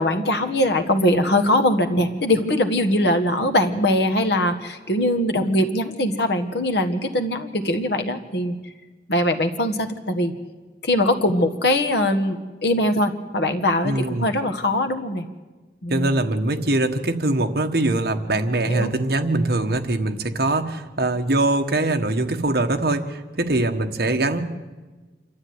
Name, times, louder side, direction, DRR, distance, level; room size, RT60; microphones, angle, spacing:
voice 1, 0.0-8.6 9.1-10.3 10.8-12.4 12.6-15.2 15.8-16.2 18.7-18.9, left 1 dB, 70° left, 8 dB, 1.6 m, -21 dB
voice 2, 13.8-14.3 15.9-24.4, right 2 dB, 55° right, 5 dB, 1.5 m, -22 dB
27.0 x 12.5 x 9.6 m, 1.3 s
head